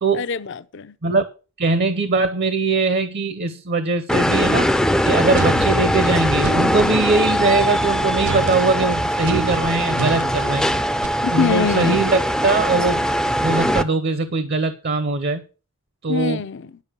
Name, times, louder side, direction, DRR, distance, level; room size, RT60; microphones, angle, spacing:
voice 1, 0.1-1.0 11.2-12.1 16.1-16.8, left 6 dB, 55° left, 0.6 m, -24 dB
voice 2, 1.6-4.7 5.0-10.6 11.3-13.1 13.4-15.4 16.0-16.4, right 3 dB, 45° right, 0.7 m, -21 dB
sound 1, 4.1-13.8, equal, 5° left, 0.4 m, -21 dB
sound 2, 5.4-6.9 8.2-11.1, right 4 dB, 85° right, 0.5 m, -29 dB
10.5 x 5.3 x 6.7 m
head